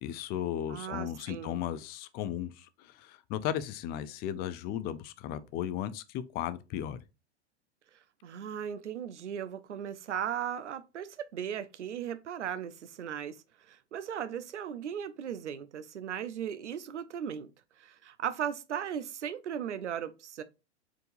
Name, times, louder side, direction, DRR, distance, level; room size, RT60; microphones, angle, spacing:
voice 1, 0.0-7.0, left 11 dB, 30° left, 0.4 m, -35 dB
voice 2, 0.7-1.6 8.2-17.5 17.8-20.4, right 9 dB, 85° right, 0.6 m, -37 dB
4.7 x 3.7 x 2.5 m
hypercardioid pair, 100°, 35 cm